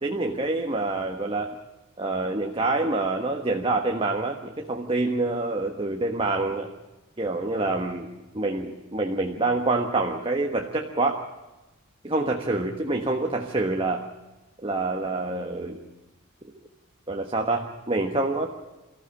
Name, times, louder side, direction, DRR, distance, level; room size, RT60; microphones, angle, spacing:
voice 1, 0.0-1.6 2.0-6.7 7.2-8.1 8.3-11.2 12.0-14.1 14.6-15.8 17.1-18.5, right 2 dB, 25° right, 2 dB, 1.5 m, -26 dB
24.5 x 15.5 x 8.6 m, 1.1 s
head